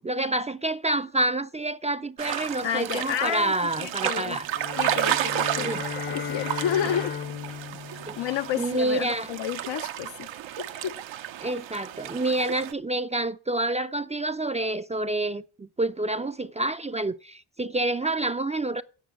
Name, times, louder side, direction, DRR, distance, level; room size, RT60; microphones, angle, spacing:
voice 1, 0.0-4.5 5.6-5.8 8.1-8.2 8.6-9.3 11.4-18.8, right 2 dB, 15° right, 0.4 m, -28 dB
sound 1, 2.2-12.7, right 11 dB, 75° right, 0.8 m, -32 dB
voice 2, 2.6-4.4 4.8-5.8 6.1-7.6 8.2-10.3 10.6-11.0, left 10 dB, 70° left, 0.7 m, -31 dB
sound 2, 4.5-9.0, left 8 dB, 25° left, 0.6 m, -36 dB
9.2 x 5.7 x 7.8 m
supercardioid pair, 60°, 46 cm